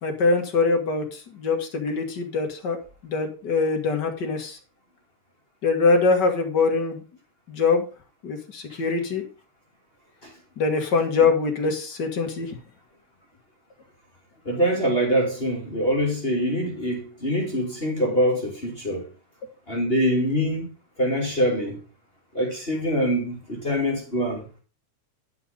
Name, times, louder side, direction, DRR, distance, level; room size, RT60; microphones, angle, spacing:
voice 1, 0.0-2.8 3.0-4.6 5.6-7.0 7.5-7.9 8.2-9.2 10.6-12.6, left 4 dB, 45° left, 1.7 m, -23 dB
voice 2, 14.4-19.1 19.7-20.7 21.0-21.8 22.3-24.4, equal, 20° left, 2.5 m, -24 dB
10.5 x 5.9 x 5.2 m
omnidirectional pair, 3.4 m